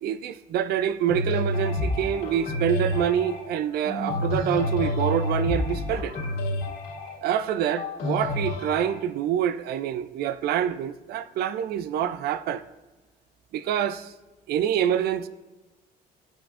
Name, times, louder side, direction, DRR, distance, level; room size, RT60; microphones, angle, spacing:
voice 1, 0.0-6.2 7.2-12.6 13.5-14.1 14.5-15.3, right 10 dB, 70° right, 0.4 m, -26 dB
sound 1, 1.1-9.0, left 1 dB, 70° left, 2.4 m, -29 dB
10.5 x 5.1 x 2.5 m
cardioid pair, 110°, 17 cm